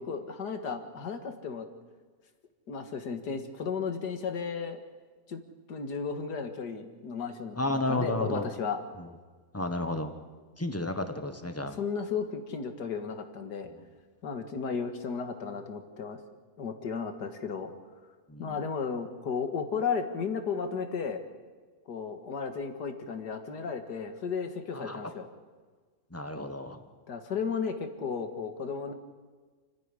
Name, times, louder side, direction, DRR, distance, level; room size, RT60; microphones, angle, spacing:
voice 1, 0.0-1.7 2.7-4.8 5.3-5.4 5.7-8.8 11.8-13.7 14.2-16.2 16.6-17.7 18.4-21.2 21.9-25.3 27.1-28.9, left 5 dB, 80° left, 7 dB, 2.2 m, -34 dB
voice 2, 7.6-8.5 9.0-9.1 9.5-10.1 10.6-11.8 18.3-18.6 24.7-25.1 26.1-26.8, left 1 dB, 10° left, 8 dB, 1.2 m, -32 dB
29.0 x 10.5 x 9.9 m, 1.5 s
omnidirectional pair, 1.7 m